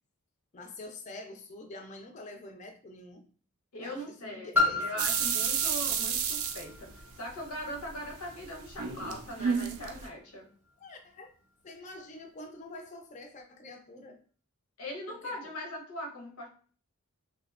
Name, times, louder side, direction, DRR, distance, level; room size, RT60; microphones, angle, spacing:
voice 1, 0.5-3.2 3.8-5.1 10.8-11.3 11.6-14.2 15.1-15.4, left 2 dB, 35° left, 5 dB, 0.3 m, -46 dB
voice 2, 3.7-6.9 7.2-10.5 14.8-16.5, equal, 85° left, 1 dB, 0.7 m, -40 dB
Piano, 4.5-10.0 10.7-10.8, left 3 dB, 10° right, 0.6 m, -34 dB
sound 1, 5.0-7.4 7.8-10.1, right 7 dB, 75° right, 0.4 m, -30 dB
2.7 x 2.1 x 2.3 m, 0.42 s
head